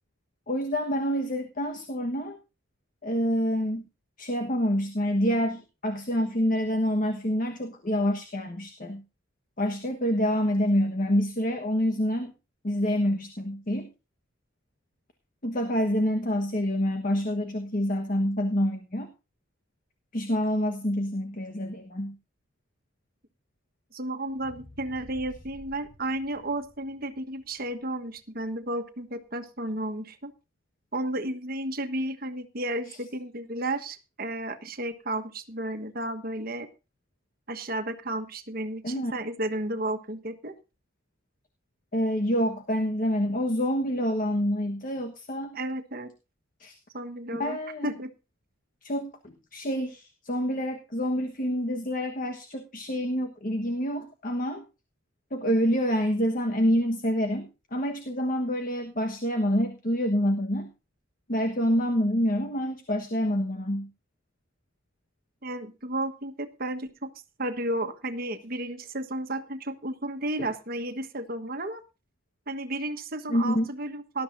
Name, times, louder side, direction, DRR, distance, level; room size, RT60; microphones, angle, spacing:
voice 1, 0.5-2.4 3.0-3.8 4.2-9.0 9.6-12.3 12.6-13.9 15.4-19.1 20.1-22.2 32.8-33.0 38.8-39.1 41.9-45.5 46.6-46.8 47.4-48.0 48.8-54.6 55.3-60.7 61.3-63.9 73.3-73.7, equal, 45° left, 5 dB, 1.3 m, -27 dB
voice 2, 23.9-30.3 30.9-36.7 37.5-40.5 45.5-46.1 46.9-47.6 47.8-48.1 65.4-67.1 67.4-71.8 72.5-74.2, right 1 dB, 50° right, 8 dB, 1.4 m, -33 dB
sound 1, 24.3-28.5 29.0-29.1, equal, 85° left, 5.2 m, -52 dB
19.0 x 12.5 x 2.7 m, 0.29 s
head